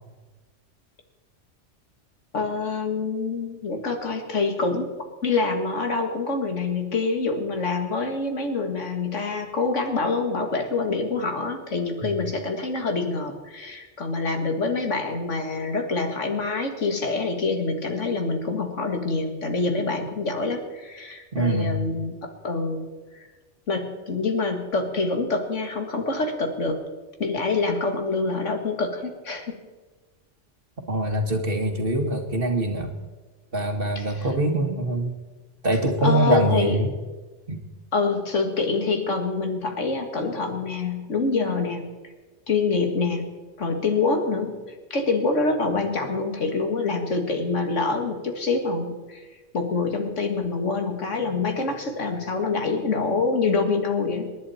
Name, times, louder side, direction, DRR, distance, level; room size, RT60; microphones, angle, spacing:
voice 1, 2.3-4.9 5.2-22.9 23.1-23.3 23.7-26.8 27.2-29.6 34.0-34.3 36.0-36.8 37.9-41.9 42.5-43.2 43.6-44.6 44.9-49.2 49.5-54.3, left 3 dB, 85° left, 4 dB, 2.2 m, -26 dB
voice 2, 21.3-21.8 30.9-32.9 33.5-35.1 35.6-36.9 37.5-37.6, right 1 dB, 50° right, 4 dB, 2.0 m, -23 dB
27.0 x 11.0 x 4.3 m, 1.3 s
omnidirectional pair, 1.2 m